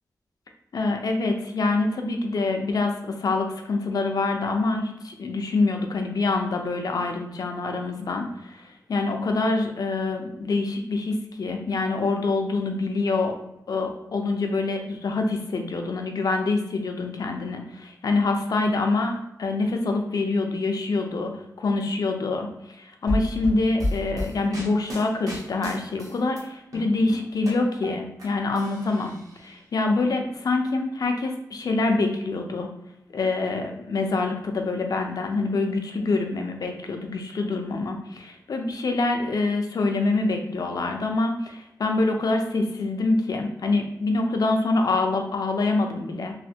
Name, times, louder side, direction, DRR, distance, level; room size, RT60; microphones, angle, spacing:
voice 1, 0.7-13.4 13.7-21.3 21.6-32.7 33.1-46.3, left 3 dB, 65° left, 4 dB, 0.5 m, -25 dB
sound 1, 23.1-26.4 26.7-28.3 28.6-29.4, left 1 dB, 60° right, 1.0 m, -31 dB
3.2 x 2.5 x 2.7 m, 0.82 s
wide cardioid pair, 140°, 7 cm